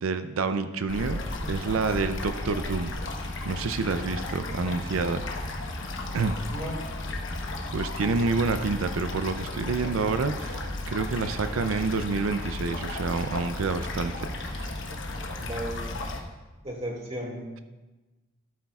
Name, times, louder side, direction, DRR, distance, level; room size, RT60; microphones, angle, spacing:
voice 1, 0.0-1.2 1.5-2.9 3.5-5.2 6.1-6.3 7.7-14.1 14.4-14.8, right 4 dB, 80° right, 10 dB, 0.5 m, -28 dB
sound 1, 0.9-16.2, left 2 dB, 65° left, 1.1 m, -34 dB
voice 2, 15.4-15.8 16.6-17.4, right 1 dB, 30° right, -1 dB, 2.1 m, -34 dB
13.0 x 12.0 x 2.4 m, 1.2 s
head